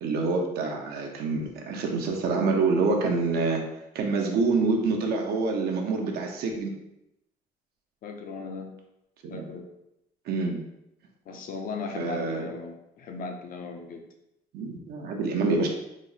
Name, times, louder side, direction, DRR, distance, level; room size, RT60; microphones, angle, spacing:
voice 1, 0.0-3.6 3.9-6.7 9.2-9.4 10.3-10.6 12.0-12.5 14.5-15.7, right 3 dB, 70° right, 2 dB, 0.8 m, -26 dB
voice 2, 8.0-8.7 9.3-9.6 11.3-14.0, left 4 dB, 55° left, 3 dB, 0.7 m, -37 dB
4.1 x 2.0 x 4.0 m, 0.85 s
cardioid pair, 110°, 17 cm